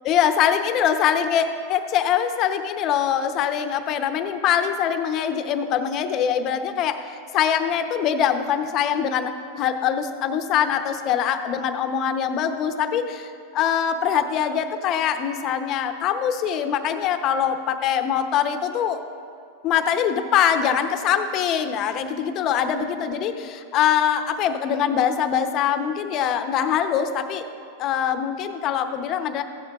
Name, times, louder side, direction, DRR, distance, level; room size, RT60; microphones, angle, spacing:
voice 1, 0.1-7.0 7.3-19.0 19.6-27.4 27.8-29.4, left 8 dB, 40° left, 8 dB, 0.7 m, -23 dB
15.5 x 11.5 x 2.4 m, 2.4 s
supercardioid pair, 130°, 0 cm